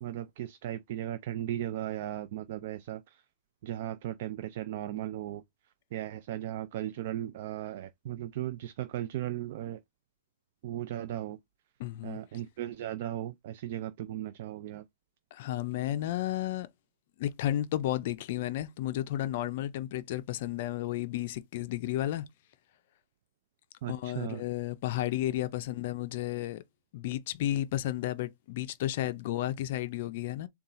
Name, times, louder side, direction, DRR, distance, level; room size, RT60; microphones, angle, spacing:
voice 1, 0.0-3.2 3.6-5.4 5.9-9.8 10.6-11.4 12.0-14.8 23.8-24.4, right 12 dB, 50° right, 0.4 m, -36 dB
voice 2, 11.8-12.2 15.3-16.7 17.2-22.3 23.9-26.6 26.9-30.5, left 13 dB, 50° left, 0.4 m, -32 dB
4.1 x 2.3 x 3.8 m
supercardioid pair, 165°, 0 cm